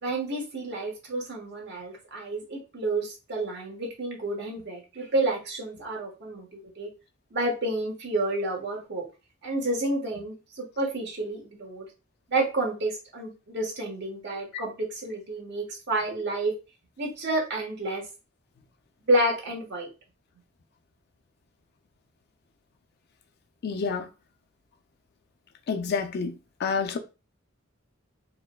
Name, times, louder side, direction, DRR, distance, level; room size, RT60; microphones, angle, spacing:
voice 1, 0.0-6.9 7.3-9.0 9.4-11.9 12.3-16.5 17.0-18.1 19.0-19.9, right 2 dB, 55° right, 1.1 m, -30 dB
voice 2, 23.6-24.1 25.7-26.3 26.6-27.0, left 5 dB, 50° left, 0.4 m, -28 dB
4.4 x 2.1 x 2.2 m
head